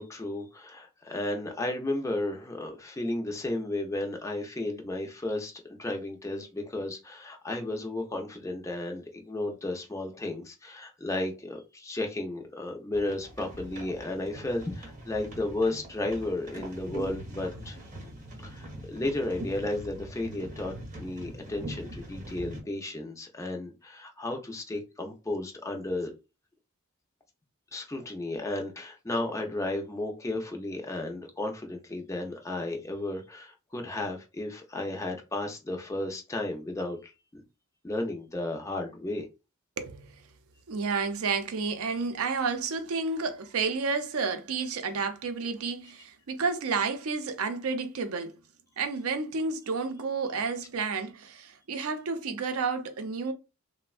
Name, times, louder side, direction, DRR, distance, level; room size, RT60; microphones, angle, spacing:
voice 1, 0.0-17.8 18.4-26.1 27.7-37.4 37.8-39.3, left 2 dB, 15° left, 0.5 m, -33 dB
sound 1, 12.9-22.6, right 1 dB, 35° right, 0.8 m, -42 dB
voice 2, 39.8-40.2 40.7-48.3 48.8-53.3, right 4 dB, 80° right, 0.5 m, -31 dB
3.3 x 2.1 x 2.3 m
head